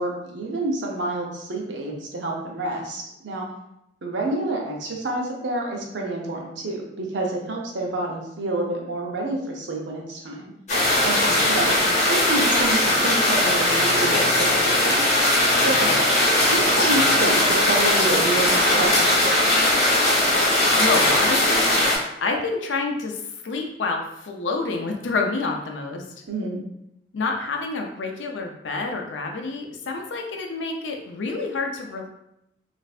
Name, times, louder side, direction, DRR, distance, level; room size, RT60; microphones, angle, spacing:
voice 1, 0.0-3.4 4.0-10.5 11.0-15.2 15.5-15.9 16.5-19.5 26.3-26.6, right 2 dB, 75° right, -1 dB, 0.7 m, -28 dB
sound 1, 10.7-22.0, left 1 dB, 40° left, 0.9 m, -19 dB
voice 2, 11.2-11.5 15.6-16.0 20.8-21.7 22.2-26.0 27.1-32.1, left 3 dB, 80° left, 2 dB, 0.5 m, -28 dB
3.2 x 2.5 x 2.4 m, 0.81 s
head